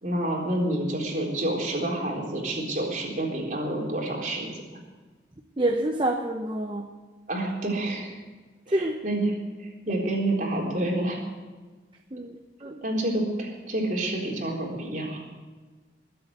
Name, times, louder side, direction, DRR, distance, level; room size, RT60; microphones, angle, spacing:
voice 1, 0.0-4.5 7.3-8.2 8.7-9.3 9.6-11.2 12.8-15.2, right 1 dB, 45° right, -1 dB, 3.9 m, -28 dB
voice 2, 5.6-6.8 8.7-8.9 12.1-12.8, right 1 dB, 25° right, 3 dB, 0.8 m, -27 dB
21.5 x 8.0 x 8.0 m, 1.4 s
head